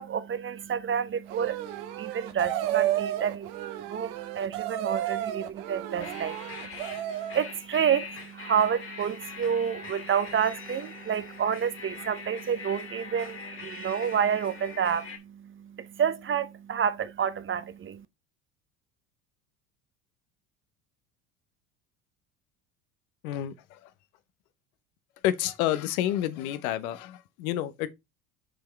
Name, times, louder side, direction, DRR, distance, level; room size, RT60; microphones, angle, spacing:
voice 1, 0.0-18.0, right 8 dB, 30° right, 0.7 m, -29 dB
sound 1, 1.3-7.4, right 12 dB, 70° right, 1.2 m, -32 dB
sound 2, 6.0-15.2, left 4 dB, 30° left, 2.2 m, -42 dB
voice 2, 23.2-23.9 25.2-27.9, left 12 dB, 75° left, 0.9 m, -29 dB
6.3 x 4.8 x 3.3 m
hypercardioid pair, 75°, 43 cm